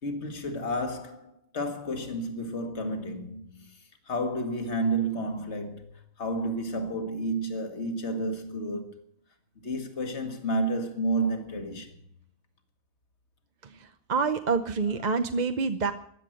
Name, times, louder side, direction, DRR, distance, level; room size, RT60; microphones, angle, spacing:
voice 1, 0.0-3.8 4.1-9.0 9.6-12.0, right 1 dB, 55° left, 2.0 m, -31 dB
voice 2, 13.6-15.9, right 4 dB, 40° right, 0.7 m, -27 dB
14.5 x 10.5 x 7.7 m
omnidirectional pair, 1.4 m